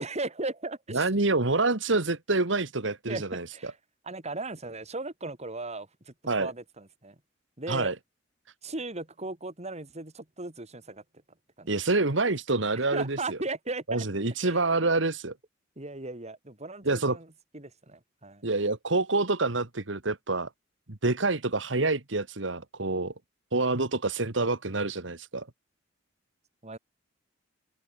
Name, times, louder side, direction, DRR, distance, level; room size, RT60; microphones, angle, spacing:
voice 1, 0.0-1.1 3.1-3.8 4.0-7.2 7.6-7.9 8.6-11.0 11.6-11.7 12.9-14.0 14.4-14.6 15.8-18.4 26.6-26.8, right 2 dB, 35° right, 3.3 m, -37 dB
voice 2, 0.9-3.7 6.3-6.5 7.7-8.0 11.7-13.4 13.9-15.3 16.9-17.2 18.4-20.5 20.9-23.1 23.5-25.5, right 3 dB, 70° right, 1.9 m, -27 dB
open air
head